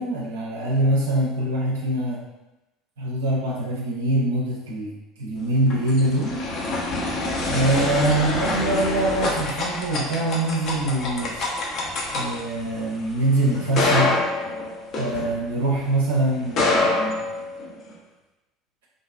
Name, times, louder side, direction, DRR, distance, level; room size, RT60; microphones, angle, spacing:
voice 1, 0.0-2.2 3.0-6.4 7.5-11.5 12.1-14.2 15.0-17.2, right 1 dB, 75° right, -4 dB, 0.4 m, -24 dB
sound 1, 5.4-15.8 16.4-17.9, left 2 dB, 50° left, 0.6 m, -26 dB
2.5 x 2.2 x 2.3 m, 0.99 s
figure-of-eight pair, 65°, 0 cm